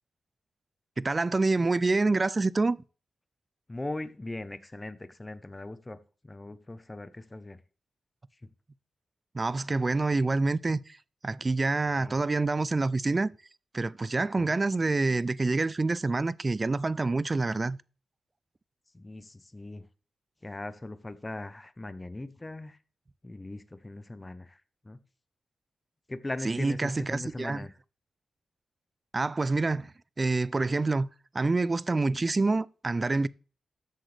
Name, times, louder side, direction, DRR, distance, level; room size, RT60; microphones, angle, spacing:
voice 1, 1.0-2.8 9.3-11.0 11.2-13.3 13.7-17.8 26.5-27.6 29.1-31.1 31.3-33.3, right 3 dB, 30° right, 0.4 m, -27 dB
voice 2, 3.7-6.0 6.2-7.6 11.9-12.2 14.2-14.6 18.9-19.8 20.4-22.8 23.2-25.0 26.1-27.7, left 2 dB, 20° left, 0.8 m, -39 dB
13.0 x 7.9 x 3.3 m
wide cardioid pair, 100°, 0 cm